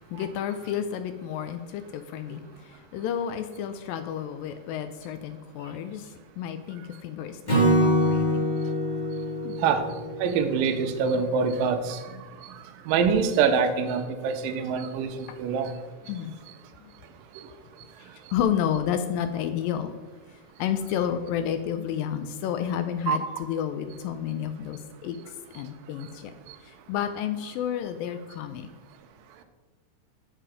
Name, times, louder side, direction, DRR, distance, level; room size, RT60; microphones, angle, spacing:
voice 1, 0.1-8.5 9.4-9.6 15.3-15.4 16.1-16.4 16.8-16.9 18.0-19.9 20.6-25.2 25.5-26.3 26.6-28.7, left 9 dB, 85° left, 9 dB, 2.0 m, -31 dB
Acoustic guitar / Strum, 7.5-10.8, equal, 15° left, 1.6 m, -24 dB
voice 2, 10.2-12.0 12.9-15.7 23.1-23.2, right 6 dB, 80° right, 6 dB, 2.2 m, -24 dB
7.6 x 6.7 x 5.0 m, 1.3 s
omnidirectional pair, 4.5 m